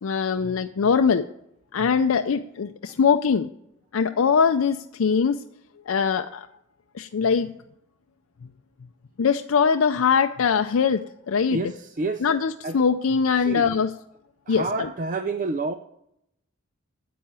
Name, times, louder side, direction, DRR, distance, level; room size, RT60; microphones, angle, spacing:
voice 1, 0.0-1.2 1.7-3.5 3.9-5.4 5.9-6.5 6.9-7.5 9.2-11.6 12.2-13.9 14.5-14.9, left 6 dB, 75° left, 8 dB, 0.5 m, -22 dB
voice 2, 11.5-12.3 12.6-12.8 13.5-13.8 14.5-15.7, right 3 dB, 40° right, 9 dB, 0.5 m, -28 dB
10.0 x 7.8 x 8.7 m, 0.81 s
head